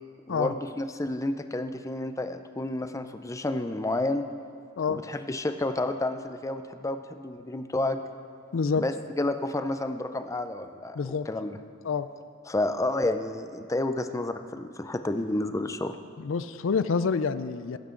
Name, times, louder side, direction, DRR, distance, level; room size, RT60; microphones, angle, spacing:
voice 1, 0.3-4.2 4.9-8.0 8.8-11.6 12.5-16.0, left 2 dB, 15° left, 8 dB, 0.5 m, -30 dB
voice 2, 8.5-8.8 10.9-11.3 11.8-12.1 16.2-17.8, left 5 dB, 80° left, 13 dB, 0.5 m, -27 dB
16.0 x 12.0 x 3.8 m, 2.3 s
head